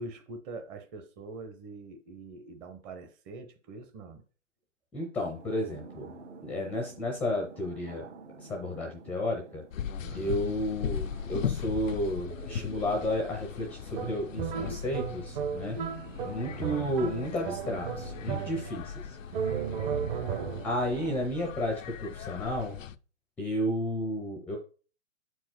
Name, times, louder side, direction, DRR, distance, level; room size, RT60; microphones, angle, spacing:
voice 1, 0.0-4.2 10.0-10.4 16.4-16.9, right 3 dB, 20° right, 0.8 m, -44 dB
voice 2, 4.9-6.1 6.4-8.0 8.4-9.6 10.1-15.8 16.2-18.9 20.6-22.8 23.4-24.6, left 1 dB, 5° left, 0.6 m, -32 dB
sound 1, 5.3-21.3, right 3 dB, 60° right, 1.6 m, -50 dB
sound 2, 9.7-23.0, left 8 dB, 80° left, 0.6 m, -39 dB
sound 3, 13.9-18.9 19.3-20.8, right 7 dB, 40° right, 1.2 m, -35 dB
7.3 x 4.6 x 4.4 m
hypercardioid pair, 135°, 39 cm